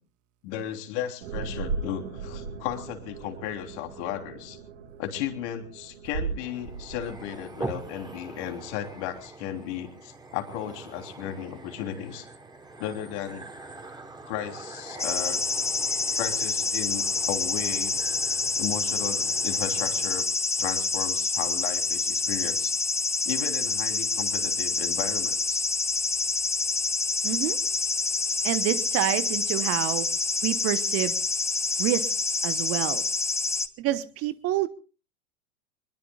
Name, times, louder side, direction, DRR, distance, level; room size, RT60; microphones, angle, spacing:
voice 1, 0.4-4.6 5.0-12.3 12.8-13.5 14.3-15.4 16.2-18.0 18.6-20.2 20.6-22.7 23.2-25.6, left 10 dB, 50° left, 5 dB, 3.4 m, -35 dB
sound 1, 1.2-9.2, right 5 dB, 65° right, 5.7 m, -38 dB
sound 2, 6.4-20.4, right 2 dB, 10° right, 3.2 m, -43 dB
sound 3, 15.0-33.7, left 4 dB, 5° left, 0.7 m, -27 dB
voice 2, 27.2-27.6 28.4-30.1 30.4-31.2 31.8-33.1 33.8-34.7, right 14 dB, 30° right, 14 dB, 1.0 m, -28 dB
25.5 x 21.5 x 2.3 m, 0.36 s
figure-of-eight pair, 95°, 44 cm